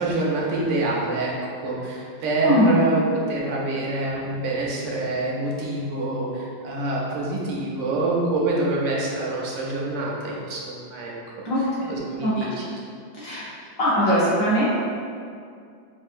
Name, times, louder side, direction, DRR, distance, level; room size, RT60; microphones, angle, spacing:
voice 1, 0.0-1.3 1.6-3.0 3.3-11.4 11.9-12.6, right 2 dB, 75° right, -4 dB, 1.2 m, -26 dB
voice 2, 2.4-2.8 11.4-11.9 12.2-12.5 13.1-13.4 13.8-14.7, equal, 55° left, -10 dB, 1.1 m, -21 dB
5.4 x 2.5 x 2.5 m, 2.3 s
omnidirectional pair, 2.0 m